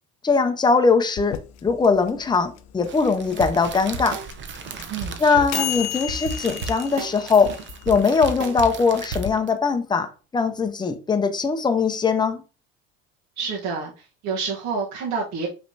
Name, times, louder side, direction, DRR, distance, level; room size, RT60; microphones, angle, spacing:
voice 1, 0.2-4.2 5.2-7.5 7.9-12.4, left 5 dB, 15° left, 0.7 m, -21 dB
sound 1, 1.2-9.3, left 14 dB, 55° left, 0.5 m, -34 dB
Crackle, 2.8-9.6, right 6 dB, 35° right, 0.8 m, -39 dB
sound 2, 3.4-9.5, right 3 dB, 85° right, 0.9 m, -32 dB
voice 2, 4.9-5.9 13.4-15.5, right 5 dB, 55° right, 1.3 m, -29 dB
5.1 x 3.3 x 2.7 m
supercardioid pair, 85°, 32 cm